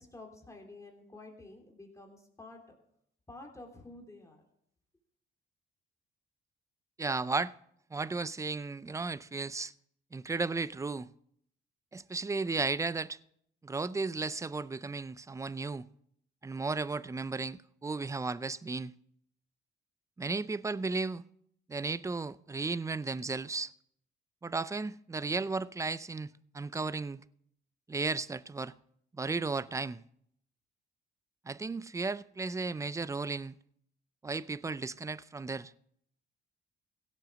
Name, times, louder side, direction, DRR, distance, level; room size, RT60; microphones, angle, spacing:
voice 1, 0.0-2.8 3.3-4.4, left 2 dB, 15° left, 3.3 m, -50 dB
voice 2, 7.0-7.5 7.9-9.7 10.1-11.1 11.9-13.2 13.6-15.9 16.4-18.9 20.2-21.2 21.7-23.7 24.4-27.2 27.9-28.7 29.1-30.0 31.5-33.5 34.2-35.7, right 3 dB, 15° right, 0.4 m, -34 dB
16.5 x 7.6 x 6.3 m
cardioid pair, 90°, 20 cm